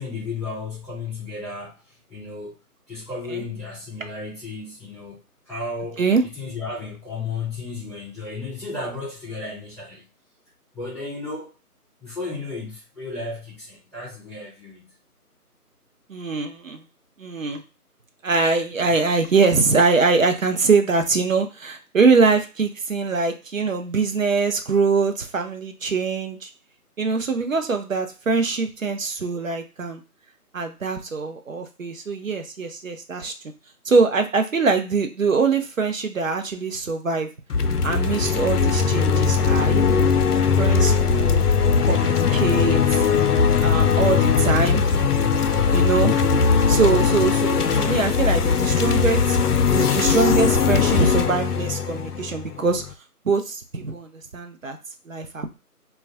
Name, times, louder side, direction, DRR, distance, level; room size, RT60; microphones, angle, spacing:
voice 1, 0.0-2.6 2.9-5.2 5.5-6.0 6.4-10.1 10.7-11.5 12.0-14.9, left 3 dB, ahead, -9 dB, 0.6 m, -34 dB
voice 2, 16.1-16.8 17.2-17.6 18.2-26.5 27.0-30.0 30.5-33.3 33.8-37.3 37.8-40.1 40.6-41.5 41.8-43.0 43.6-44.8 45.7-46.2 46.7-49.4 49.7-52.8 53.2-54.8 55.1-55.6, right 4 dB, 60° right, 6 dB, 0.6 m, -23 dB
sound 1, 37.5-52.9, left 6 dB, 75° left, 0.5 m, -20 dB
2.3 x 2.2 x 3.5 m, 0.30 s
figure-of-eight pair, 170°, 46 cm